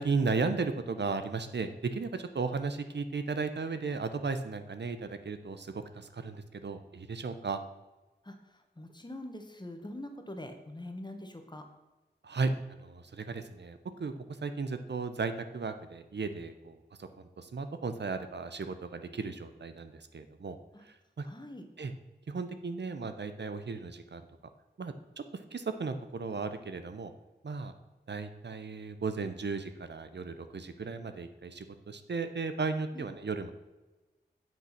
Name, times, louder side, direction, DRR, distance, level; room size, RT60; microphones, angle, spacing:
voice 1, 0.0-7.6 12.2-14.1 14.4-20.6 20.8-21.2 21.8-21.9 22.3-24.3 24.8-27.1 27.4-27.7 28.1-33.5, right 4 dB, 70° right, 9 dB, 0.8 m, -35 dB
voice 2, 8.8-11.6 21.3-21.6 32.9-33.1, left 1 dB, 25° left, 5 dB, 1.4 m, -43 dB
8.9 x 6.2 x 5.8 m, 1.1 s
wide cardioid pair, 70°, 19 cm